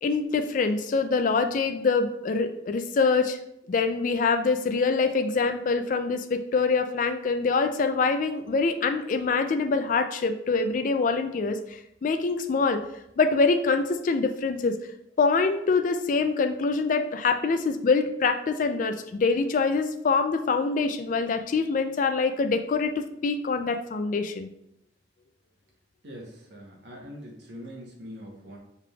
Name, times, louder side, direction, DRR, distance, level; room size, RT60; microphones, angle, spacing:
voice 1, 0.0-3.4 3.7-12.8 13.2-14.8 15.2-24.5, left 4 dB, 40° left, 7 dB, 0.3 m, -25 dB
voice 2, 26.0-28.6, equal, 60° right, -1 dB, 1.0 m, -43 dB
4.9 x 3.3 x 2.3 m, 0.79 s
head